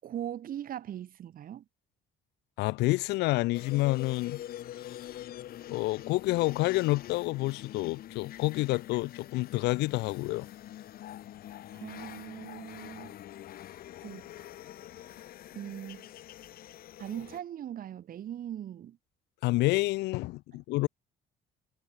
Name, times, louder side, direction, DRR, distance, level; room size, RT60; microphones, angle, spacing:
voice 1, 0.0-1.6 11.7-13.2 14.0-14.2 15.6-16.1 17.0-19.0, right 10 dB, 55° right, 6.9 m, -40 dB
voice 2, 2.6-4.4 5.7-10.5 19.4-20.9, left 20 dB, 85° left, 0.9 m, -28 dB
sound 1, 3.5-17.4, left 12 dB, 60° left, 1.4 m, -45 dB
cardioid pair, 110°, 17 cm